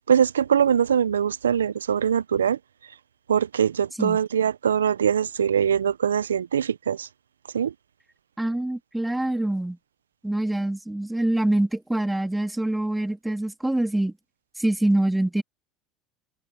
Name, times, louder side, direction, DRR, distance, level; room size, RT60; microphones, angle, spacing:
voice 1, 0.1-2.6 3.3-7.1 7.5-7.7, right 8 dB, 85° right, 0.8 m, -22 dB
voice 2, 8.4-9.8 10.2-14.1 14.6-15.4, right 1 dB, 5° right, 3.6 m, -25 dB
hypercardioid pair, 70°, 0 cm